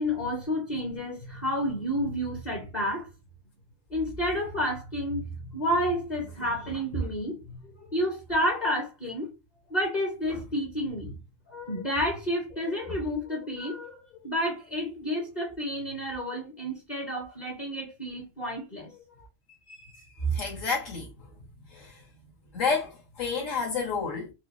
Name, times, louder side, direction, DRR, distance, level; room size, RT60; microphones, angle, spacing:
voice 1, 0.0-3.1 3.9-9.3 9.7-11.2 11.5-19.0, equal, 40° left, 0.8 m, -30 dB
voice 2, 19.7-21.1 21.7-22.0 22.5-24.3, left 3 dB, 80° left, 1.7 m, -30 dB
4.4 x 2.1 x 2.5 m
omnidirectional pair, 1.3 m